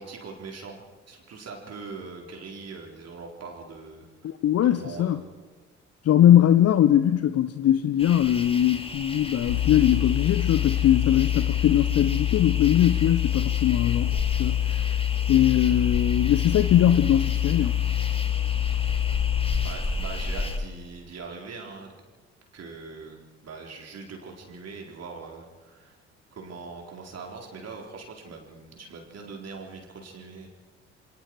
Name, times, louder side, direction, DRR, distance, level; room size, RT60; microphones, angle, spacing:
voice 1, 0.0-4.3 4.6-5.2 17.6-17.7 19.6-21.9 22.5-26.0 26.3-30.5, right 4 dB, 45° right, 4.3 m, -41 dB
voice 2, 4.2-5.2 6.0-14.8 15.3-17.7, left 11 dB, 45° left, 0.9 m, -21 dB
sound 1, 8.0-20.6, left 2 dB, 15° left, 2.7 m, -35 dB
sound 2, 9.5-19.7, left 12 dB, 70° left, 1.2 m, -26 dB
29.0 x 24.0 x 4.8 m
figure-of-eight pair, 45°, 34 cm